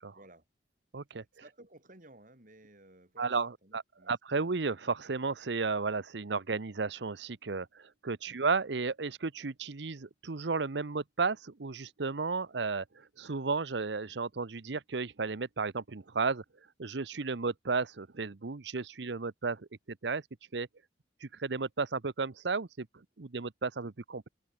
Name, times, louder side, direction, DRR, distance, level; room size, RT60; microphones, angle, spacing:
voice 1, 0.1-0.5 1.1-4.4 8.3-8.4, right 1 dB, 45° right, 5.4 m, -57 dB
voice 2, 0.9-1.2 3.2-16.4 16.8-20.2 20.5-20.7 21.2-22.9 23.2-24.3, right 4 dB, 70° right, 0.8 m, -33 dB
head